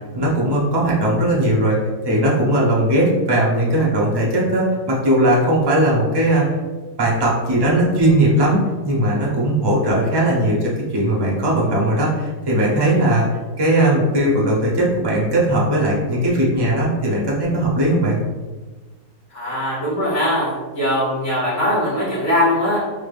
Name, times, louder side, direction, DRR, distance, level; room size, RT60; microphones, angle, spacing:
voice 1, 0.1-1.8 2.0-6.4 7.0-13.3 13.6-18.2, right 1 dB, 30° right, -4 dB, 0.5 m, -18 dB
voice 2, 19.3-22.9, left 1 dB, 45° left, -8 dB, 1.3 m, -21 dB
4.2 x 2.2 x 3.3 m, 1.3 s
omnidirectional pair, 1.7 m